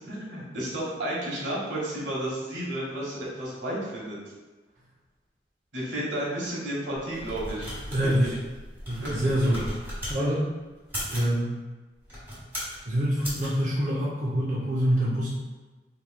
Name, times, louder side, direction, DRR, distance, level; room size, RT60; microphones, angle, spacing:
voice 1, 0.1-4.3 5.7-8.3 9.0-9.1, right 1 dB, 85° right, -5 dB, 1.2 m, -32 dB
sound 1, 7.0-10.2 10.8-11.3 12.0-12.8 13.2-13.5, equal, 10° right, 1.3 m, -37 dB
voice 2, 7.9-8.3 8.9-9.7 10.1-10.5 11.1-11.6 12.9-15.3, equal, 45° right, -6 dB, 0.6 m, -25 dB
4.4 x 3.1 x 2.3 m, 1.2 s
head